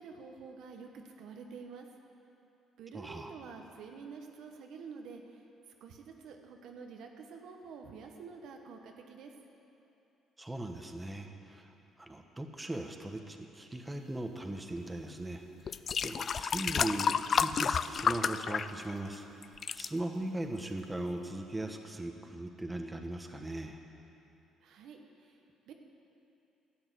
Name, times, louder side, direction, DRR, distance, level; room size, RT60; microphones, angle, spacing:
voice 1, 0.0-1.9 2.8-5.4 5.8-9.3 24.6-25.3 25.7-25.8, right 5 dB, 70° right, 3 dB, 1.0 m, -48 dB
voice 2, 2.9-3.3 10.4-11.7 12.0-15.7 16.0-19.2 19.7-23.8, right 1 dB, 15° right, 4 dB, 1.2 m, -39 dB
sound 1, 15.0-15.1 15.7-19.1 19.4-19.9 20.6-20.7, left 6 dB, 50° left, 0.3 m, -31 dB
11.0 x 7.8 x 7.8 m, 2.9 s
hypercardioid pair, 60°, 0 cm